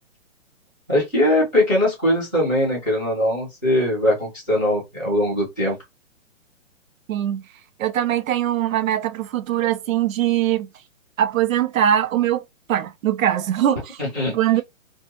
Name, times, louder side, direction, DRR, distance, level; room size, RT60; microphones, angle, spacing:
voice 1, 0.9-5.8 14.0-14.3, left 1 dB, 10° right, 0.5 m, -21 dB
voice 2, 7.1-7.4 7.8-10.7 11.2-12.4 12.7-14.0 14.3-14.6, right 11 dB, 75° right, 0.6 m, -21 dB
2.5 x 2.3 x 2.8 m
hypercardioid pair, 160°, 41 cm